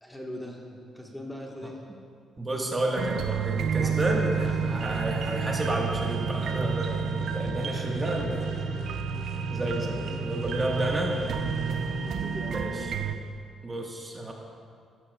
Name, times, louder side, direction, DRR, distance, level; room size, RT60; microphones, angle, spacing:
voice 1, 0.0-1.8 3.7-4.8 8.2-8.9 9.9-10.4 10.9-11.4 12.0-13.0, left 1 dB, 10° left, -1 dB, 1.5 m, -42 dB
voice 2, 2.4-8.5 9.5-11.2 12.5-12.9 13.6-14.3, right 1 dB, 20° right, -1 dB, 1.5 m, -31 dB
sound 1, 3.0-13.1, right 7 dB, 70° right, 0.6 m, -30 dB
sound 2, 4.3-12.1, left 2 dB, 80° left, 1.5 m, -38 dB
13.5 x 13.0 x 2.4 m, 2.2 s
cardioid pair, 90°, 0 cm